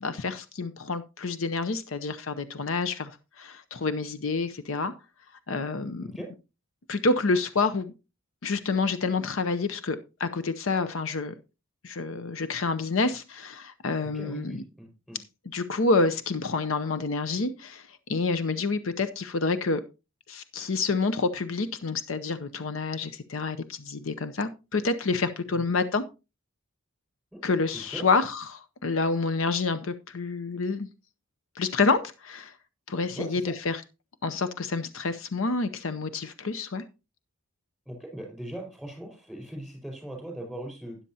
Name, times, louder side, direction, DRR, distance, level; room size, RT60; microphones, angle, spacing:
voice 1, 0.0-4.9 5.5-6.1 6.9-7.9 8.4-11.3 11.8-14.6 15.5-19.8 20.3-26.0 27.4-30.9 31.6-32.5 32.9-33.8 34.2-36.8, left 3 dB, 70° left, 0.7 m, -28 dB
voice 2, 14.0-15.2 25.5-25.7 27.3-27.4 27.7-28.0 33.1-33.5 37.8-41.0, right 1 dB, ahead, 4.9 m, -40 dB
13.0 x 9.7 x 2.8 m
head